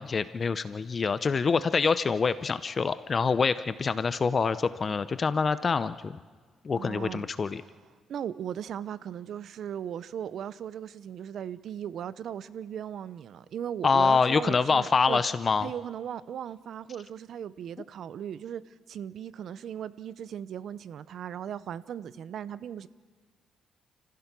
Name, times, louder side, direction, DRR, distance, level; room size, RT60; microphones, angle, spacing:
voice 1, 0.0-6.2 6.6-7.6 13.8-15.7, left 5 dB, 40° left, 13 dB, 0.7 m, -26 dB
voice 2, 6.7-7.2 8.1-15.2 15.6-18.6 18.9-22.9, right 9 dB, 65° right, 16 dB, 0.7 m, -37 dB
29.5 x 15.0 x 6.1 m, 1.5 s
cardioid pair, 90°, 0 cm